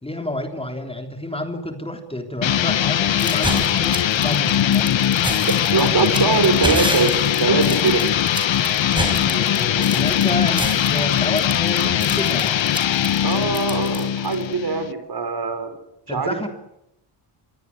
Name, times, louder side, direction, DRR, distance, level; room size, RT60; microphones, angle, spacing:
voice 1, 0.0-5.0 9.3-12.6 16.1-16.5, left 1 dB, 10° left, 5 dB, 3.5 m, -29 dB
sound 1, 2.4-14.9, left 10 dB, 65° left, 1.3 m, -20 dB
sound 2, 3.2-14.4, right 1 dB, 10° right, 6.0 m, -29 dB
voice 2, 5.5-7.1 7.4-8.0 13.2-15.7 16.1-16.5, right 4 dB, 50° right, 9 dB, 5.9 m, -22 dB
26.5 x 22.0 x 9.7 m, 0.84 s
cardioid pair, 100°, 49 cm